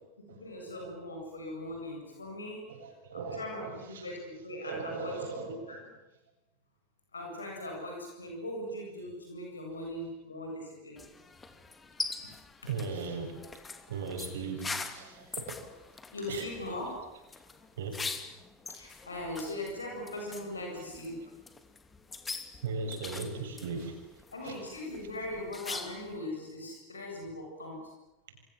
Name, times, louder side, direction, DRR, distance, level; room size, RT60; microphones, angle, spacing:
voice 1, 0.3-2.6 3.1-5.2 5.4-5.8 7.1-11.0 16.1-16.9 18.7-21.2 24.3-27.9, left 1 dB, 85° left, 1 dB, 7.9 m, -40 dB
voice 2, 2.7-4.1 4.3-5.8 12.7-13.3 13.9-15.5 16.2-16.7 17.8-18.1 19.4-19.5 22.6-24.0 24.4-24.9, right 4 dB, 65° right, 5 dB, 7.4 m, -38 dB
sound 1, 11.0-26.2, left 4 dB, 15° left, 2.7 m, -43 dB
29.5 x 26.0 x 7.7 m, 0.95 s
figure-of-eight pair, 85°, 0 cm